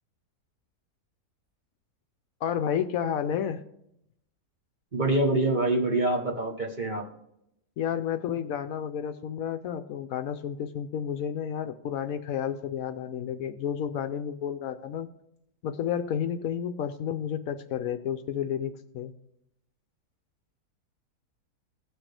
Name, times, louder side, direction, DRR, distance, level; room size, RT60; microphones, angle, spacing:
voice 1, 2.4-3.6 7.8-15.1 15.6-19.1, left 8 dB, 70° left, 9 dB, 0.9 m, -31 dB
voice 2, 4.9-7.1, right 2 dB, 35° right, 1 dB, 1.0 m, -25 dB
17.0 x 6.2 x 3.3 m, 0.78 s
omnidirectional pair, 1.6 m